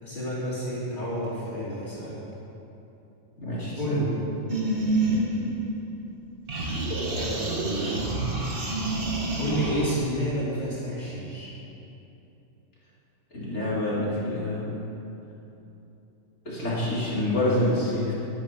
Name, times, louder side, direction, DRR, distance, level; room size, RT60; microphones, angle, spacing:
voice 1, 0.0-2.2 3.8-4.1 7.1-8.1 9.4-11.5, equal, 35° left, -12 dB, 2.8 m, -30 dB
voice 2, 3.4-4.0 13.3-14.7 16.4-18.1, left 1 dB, 55° left, -7 dB, 3.1 m, -27 dB
sound 1, 4.5-6.1 6.5-10.0, right 2 dB, 40° right, 1.7 m, -28 dB
11.5 x 10.5 x 6.0 m, 2.9 s
omnidirectional pair, 1.4 m